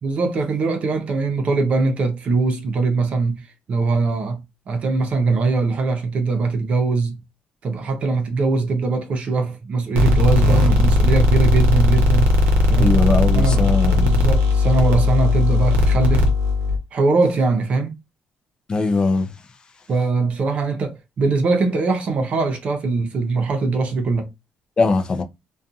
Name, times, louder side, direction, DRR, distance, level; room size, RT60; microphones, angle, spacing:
voice 1, 0.0-3.4 3.7-7.2 7.6-12.4 12.7-12.9 13.3-16.3 16.9-17.9 19.9-24.3, right 3 dB, 45° right, 0.7 m, -21 dB
sound 1, 10.0-16.8, left 2 dB, 80° right, 0.7 m, -17 dB
voice 2, 12.8-14.1 18.7-19.3 24.8-25.2, left 3 dB, 25° left, 0.4 m, -20 dB
2.4 x 2.3 x 2.6 m
cardioid pair, 145°, 3 cm